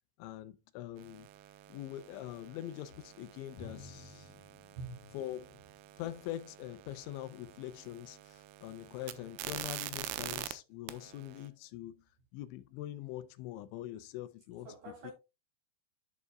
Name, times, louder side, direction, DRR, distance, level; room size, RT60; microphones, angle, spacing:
voice 1, 0.2-1.3 1.7-4.3 5.1-5.6 6.0-12.0 12.3-14.7 15.0-15.1, left 13 dB, 90° left, 3.1 m, -43 dB
sound 1, 1.0-10.5 10.9-11.5, right 14 dB, 85° right, 2.3 m, -46 dB
Drum, 3.6-6.0, left 3 dB, 65° left, 3.7 m, -53 dB
voice 2, 4.8-5.2 14.6-15.1, right 2 dB, 60° right, 5.4 m, -45 dB
11.0 x 6.9 x 2.2 m
omnidirectional pair, 5.3 m